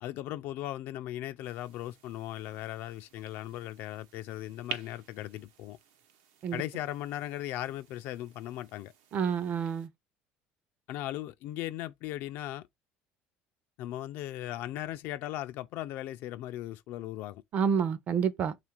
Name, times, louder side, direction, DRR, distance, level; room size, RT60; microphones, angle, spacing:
voice 1, 0.0-5.8 6.5-8.9 10.9-12.7 13.8-17.4, left 13 dB, 55° left, 0.3 m, -38 dB
sound 1, 1.4-9.9, right 8 dB, 80° right, 0.8 m, -49 dB
voice 2, 9.1-9.9 17.5-18.6, right 7 dB, 35° right, 0.5 m, -28 dB
3.6 x 2.4 x 4.4 m
cardioid pair, 160°, 4 cm